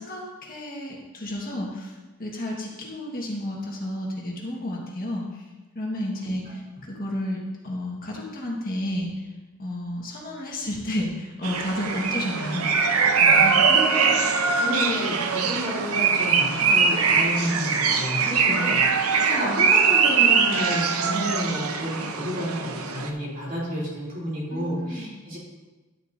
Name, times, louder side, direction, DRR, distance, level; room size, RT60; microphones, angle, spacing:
voice 1, 0.0-5.5 5.7-9.2 9.6-12.7 13.2-13.6 24.5-25.3, left 1 dB, 40° left, -2 dB, 1.5 m, -32 dB
sound 1, 11.4-23.1, right 5 dB, 80° right, 0.7 m, -22 dB
voice 2, 13.4-25.4, equal, 40° right, -5 dB, 3.2 m, -30 dB
11.5 x 8.2 x 2.7 m, 1.2 s
head